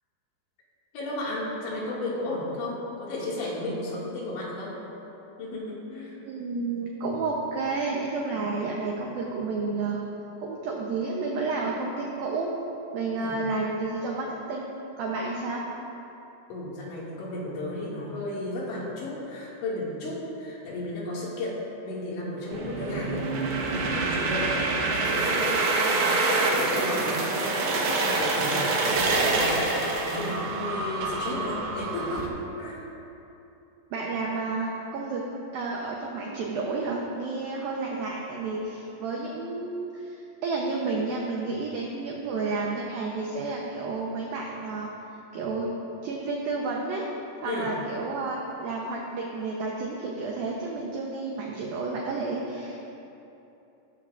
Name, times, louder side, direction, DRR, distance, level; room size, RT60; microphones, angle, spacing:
voice 1, 0.9-4.8 5.4-6.2 13.2-13.4 16.5-32.8 47.4-47.7, left 1 dB, 70° left, -5 dB, 4.5 m, -34 dB
voice 2, 6.2-10.0 10.4-12.5 12.9-15.6 33.9-35.3 35.5-44.9 45.3-45.7 46.0-47.1 47.4-52.9, right 3 dB, 85° right, -2 dB, 2.0 m, -31 dB
sound 1, 22.5-32.3, right 3 dB, 65° right, 2.6 m, -26 dB
17.0 x 14.0 x 2.6 m, 2.9 s
omnidirectional pair, 5.6 m